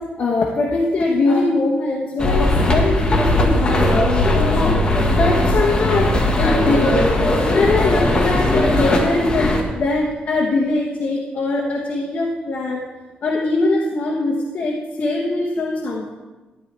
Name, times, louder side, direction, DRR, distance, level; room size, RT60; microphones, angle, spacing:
voice 1, 0.2-4.6 5.1-6.9 7.4-12.9 13.2-16.1, left 3 dB, 50° left, -1 dB, 1.2 m, -21 dB
sound 1, 2.2-9.6, left 1 dB, 30° left, 1.6 m, -18 dB
14.0 x 9.2 x 3.4 m, 1.2 s
cardioid pair, 115°, 3 cm